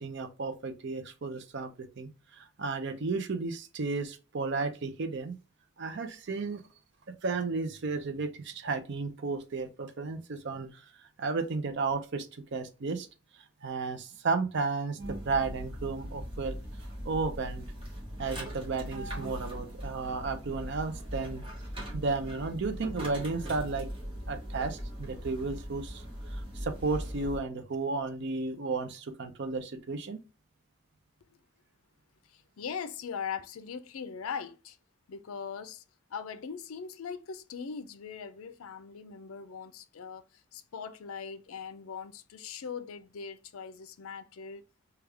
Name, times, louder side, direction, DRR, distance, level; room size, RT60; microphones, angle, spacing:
voice 1, 0.0-5.3 5.8-6.6 7.2-10.8 11.2-13.1 13.6-16.6 17.0-17.7 18.2-21.4 21.9-23.9 24.3-26.0 26.3-30.2, right 4 dB, 55° right, 0.5 m, -33 dB
sound 1, 15.0-27.4, equal, 25° right, 1.0 m, -40 dB
voice 2, 32.3-34.8 35.1-35.8 36.1-40.2 40.5-44.6, left 6 dB, 75° left, 0.4 m, -40 dB
3.4 x 2.3 x 3.3 m
head